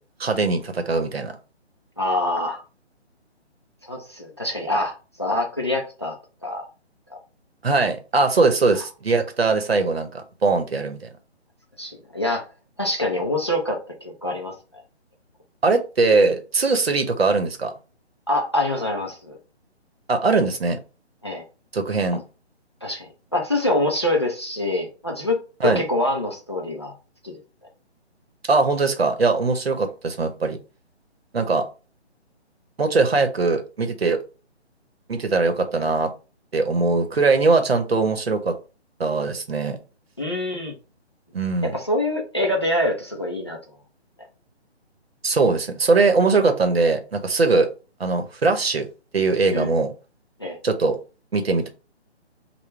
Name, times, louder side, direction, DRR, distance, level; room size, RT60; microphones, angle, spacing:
voice 1, 0.2-1.3 7.6-11.1 15.6-17.7 20.1-20.8 21.7-22.2 25.6-25.8 28.5-30.6 31.3-31.7 32.8-34.2 35.1-36.1 36.5-38.5 39.0-39.8 41.3-41.8 45.2-47.7 48.0-48.9 49.1-49.9 50.6-51.0 51.3-51.7, right 3 dB, 65° right, 0.9 m, -21 dB
voice 2, 2.0-2.6 3.8-6.2 6.4-6.7 11.8-12.5 12.8-14.5 18.3-19.4 21.2-21.4 22.8-26.9 27.2-27.3 40.2-40.7 41.6-43.6 49.5-49.7 50.4-50.6, left 1 dB, 25° left, 0.4 m, -25 dB
3.6 x 2.2 x 4.3 m
figure-of-eight pair, 145°, 34 cm